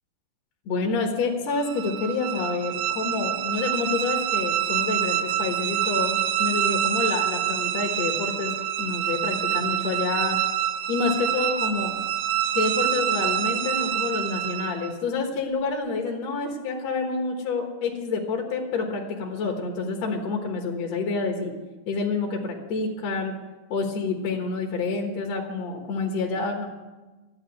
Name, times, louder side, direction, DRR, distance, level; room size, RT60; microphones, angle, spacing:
voice 1, 0.7-8.5 8.8-10.4 10.9-11.9 12.5-21.5 21.9-23.3 23.7-26.7, left 4 dB, 55° left, 1 dB, 2.2 m, -28 dB
sound 1, 1.6-15.0, right 11 dB, 80° right, 2.4 m, -26 dB
12.5 x 8.7 x 9.3 m, 1.2 s
omnidirectional pair, 4.1 m